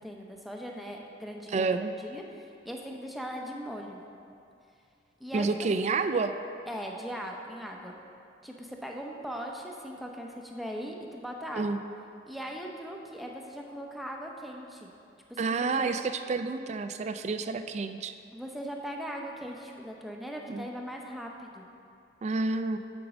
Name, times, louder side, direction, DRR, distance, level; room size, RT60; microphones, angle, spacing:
voice 1, 0.0-4.0 5.2-5.5 6.7-7.9 8.4-11.6 12.3-14.9 15.3-15.9 18.3-21.6, equal, ahead, 0 dB, 0.7 m, -39 dB
voice 2, 1.5-1.9 5.3-6.3 11.6-11.8 15.4-18.1 20.5-20.6 22.2-22.8, right 4 dB, 35° right, 9 dB, 0.3 m, -29 dB
8.0 x 5.3 x 6.0 m, 2.6 s
head